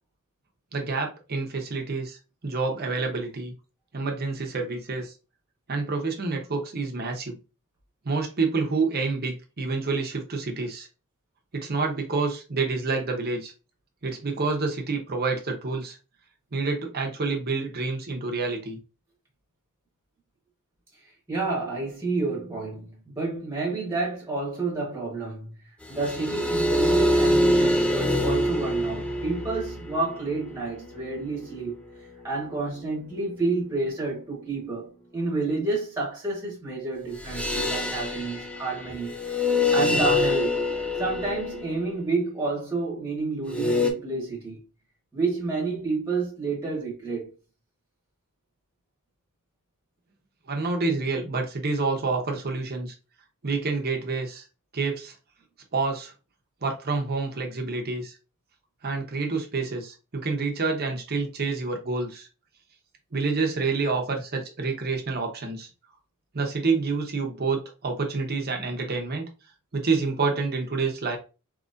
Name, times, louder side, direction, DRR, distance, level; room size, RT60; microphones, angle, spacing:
voice 1, 0.7-3.5 3.9-5.1 5.7-7.4 8.0-10.9 11.5-13.5 14.0-16.0 16.5-18.8 50.5-52.9 53.4-54.4 54.7-55.1 55.7-56.1 56.6-58.2 58.8-62.3 63.1-65.7 66.3-69.2 69.7-71.2, right 4 dB, 45° right, 0.8 m, -28 dB
voice 2, 21.3-25.5 25.9-40.6 41.0-44.6 45.1-47.3, right 3 dB, 10° right, 1.1 m, -30 dB
sound 1, 25.9-31.5 37.2-41.9 43.5-43.9, left 1 dB, 5° left, 0.4 m, -25 dB
3.9 x 2.9 x 2.5 m
head